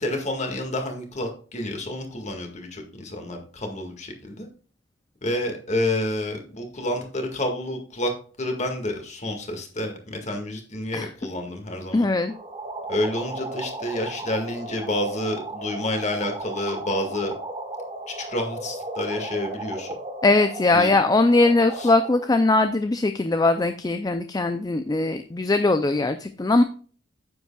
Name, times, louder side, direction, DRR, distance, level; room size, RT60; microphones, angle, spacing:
voice 1, 0.0-4.5 5.2-8.1 8.4-12.1 12.9-17.3 18.1-19.9 20.7-21.0 21.8-21.9, left 1 dB, 35° left, 3 dB, 1.9 m, -29 dB
voice 2, 11.9-12.3 20.2-26.6, left 2 dB, 20° left, 9 dB, 0.4 m, -20 dB
sound 1, 12.3-22.3, right 2 dB, 25° right, 1.8 m, -35 dB
9.4 x 8.0 x 2.3 m, 0.42 s
head